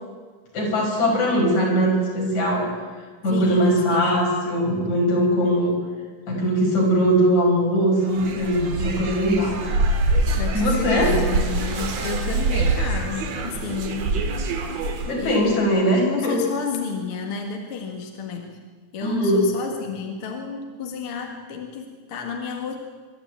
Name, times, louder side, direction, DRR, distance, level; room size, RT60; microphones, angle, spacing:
voice 1, 0.5-2.7 3.2-5.8 6.3-9.6 10.5-11.1 15.0-16.4 19.0-19.4, equal, 70° left, -2 dB, 6.9 m, -21 dB
voice 2, 3.3-4.1 10.4-14.2 15.2-18.6 18.9-22.8, left 5 dB, 50° left, 2 dB, 2.4 m, -31 dB
sound 1, 8.0-15.2, right 2 dB, 60° right, 2.8 m, -25 dB
25.0 x 12.5 x 8.8 m, 1.5 s
omnidirectional pair, 3.5 m